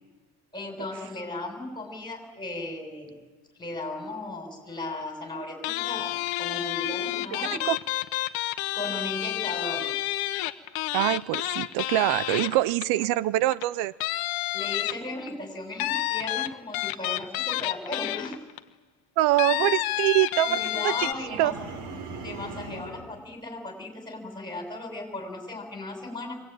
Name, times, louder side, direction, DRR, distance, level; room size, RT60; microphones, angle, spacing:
voice 1, 0.5-3.1 3.6-7.7 8.7-9.9 12.3-13.0 14.5-18.4 19.5-19.6 20.4-21.5 22.2-26.3, left 2 dB, 10° left, 6.1 m, -36 dB
sound 1, 5.6-13.1 13.5-13.6 14.0-15.3 15.8-18.6 19.4-21.1, left 16 dB, 70° left, 1.2 m, -29 dB
voice 2, 10.9-13.9 19.2-20.6 20.8-21.5, right 16 dB, 80° right, 0.7 m, -24 dB
sound 2, 20.9-23.1, right 3 dB, 60° right, 4.5 m, -39 dB
24.0 x 19.5 x 9.2 m
cardioid pair, 155°, 38 cm